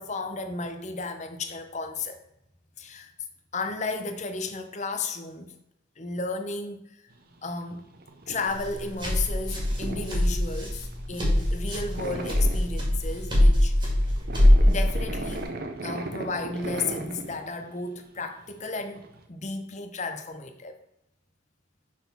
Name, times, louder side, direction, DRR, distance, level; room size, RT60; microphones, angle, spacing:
voice 1, 0.0-2.2 2.8-3.1 3.5-5.5 6.0-6.8 7.4-7.8 8.3-13.7 14.6-15.5 15.8-20.7, left 3 dB, 35° left, 0.7 m, -33 dB
sound 1, 7.1-19.2, right 2 dB, 45° right, 0.7 m, -38 dB
sound 2, 8.5-15.4, left 1 dB, 20° right, 2.0 m, -23 dB
6.2 x 4.1 x 5.4 m
head